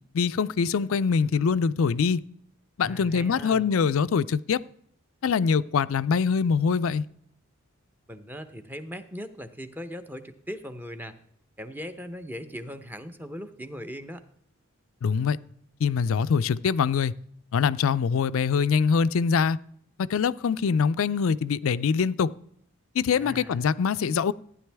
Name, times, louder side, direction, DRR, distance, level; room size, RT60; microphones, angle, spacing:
voice 1, 0.1-2.2 2.8-4.6 5.2-7.0 15.0-15.4 15.8-17.1 17.5-19.6 20.1-22.3 23.0-24.3, left 6 dB, 70° left, 17 dB, 0.4 m, -24 dB
voice 2, 2.8-3.7 8.1-11.2 11.6-14.2 23.1-23.7, equal, 10° right, 9 dB, 0.7 m, -39 dB
14.5 x 9.9 x 3.4 m, 0.68 s
head